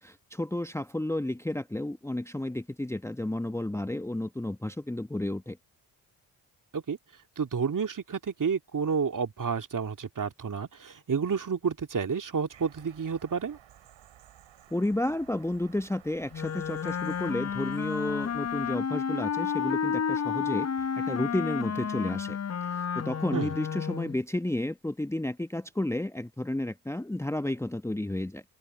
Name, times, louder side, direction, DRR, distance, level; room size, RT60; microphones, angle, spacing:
voice 1, 0.0-5.6 14.7-28.4, left 1 dB, 5° left, 1.2 m, -32 dB
voice 2, 7.4-13.6 23.3-23.5, right 6 dB, 40° right, 2.8 m, -30 dB
sound 1, 12.5-18.8, right 11 dB, 65° right, 5.6 m, -55 dB
Wind instrument woodwind instrument, 16.3-24.2, left 7 dB, 30° left, 1.1 m, -31 dB
hypercardioid pair, 40°, 49 cm